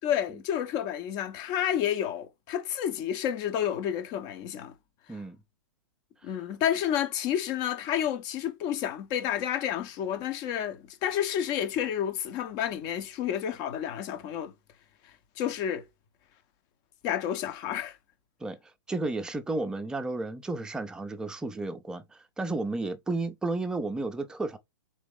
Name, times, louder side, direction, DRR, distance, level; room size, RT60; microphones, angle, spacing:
voice 1, 0.0-4.7 6.2-14.5 15.4-15.8 17.0-18.0, left 10 dB, 35° left, 1.0 m, -30 dB
voice 2, 18.9-24.6, right 2 dB, 5° right, 0.6 m, -32 dB
4.0 x 3.0 x 3.5 m
hypercardioid pair, 140°, 12 cm